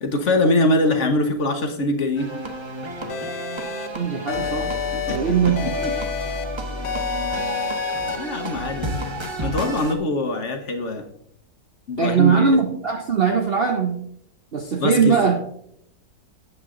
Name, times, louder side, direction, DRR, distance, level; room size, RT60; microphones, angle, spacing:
voice 1, 0.0-2.3 5.1-5.3 7.6-7.7 8.2-8.9 9.4-11.0 11.9-12.5 14.8-15.2, left 1 dB, 50° left, 5 dB, 1.2 m, -22 dB
sound 1, 2.2-10.0, equal, 20° right, 0.9 m, -31 dB
sound 2, 3.1-3.9 4.3-5.2 5.6-6.4 6.8-8.2, left 5 dB, 75° left, 1.5 m, -28 dB
voice 2, 3.9-4.7 5.1-5.9 12.0-14.1 14.5-15.4, right 6 dB, 55° right, 4 dB, 0.7 m, -20 dB
9.1 x 7.8 x 3.7 m, 0.69 s
omnidirectional pair, 1.8 m